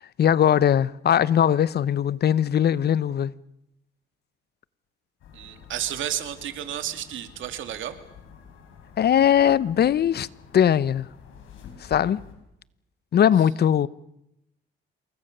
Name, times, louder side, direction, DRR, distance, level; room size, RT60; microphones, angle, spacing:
voice 1, 0.2-3.3 9.0-10.3 10.5-11.1 11.9-12.2 13.1-13.9, left 9 dB, 55° left, 0.8 m, -20 dB
sound 1, 5.2-12.3, left 7 dB, 80° left, 6.0 m, -48 dB
voice 2, 5.3-8.0, right 11 dB, 75° right, 2.6 m, -32 dB
27.5 x 22.0 x 6.8 m
cardioid pair, 90°, 20 cm